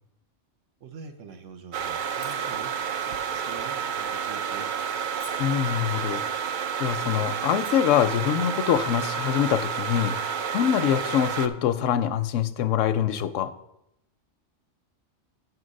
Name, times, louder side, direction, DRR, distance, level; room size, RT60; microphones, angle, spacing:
voice 1, 0.8-2.7 3.1-4.7, right 5 dB, 80° right, 7 dB, 1.2 m, -44 dB
sound 1, 1.7-11.5, right 7 dB, 60° right, 0.5 m, -30 dB
sound 2, 2.2-2.5 2.9-3.2 3.8-4.0 4.7-4.9 5.2-5.7 6.4-6.5 6.8-6.9 7.4-7.7 8.1-8.3, right 1 dB, 25° right, 0.9 m, -45 dB
voice 2, 5.4-6.2 6.8-13.5, left 10 dB, 85° left, 13 dB, 0.9 m, -24 dB
Wind instrument woodwind instrument, 7.7-11.8, left 4 dB, 35° left, 0.5 m, -44 dB
8.3 x 4.6 x 6.3 m, 0.82 s
omnidirectional pair, 1.3 m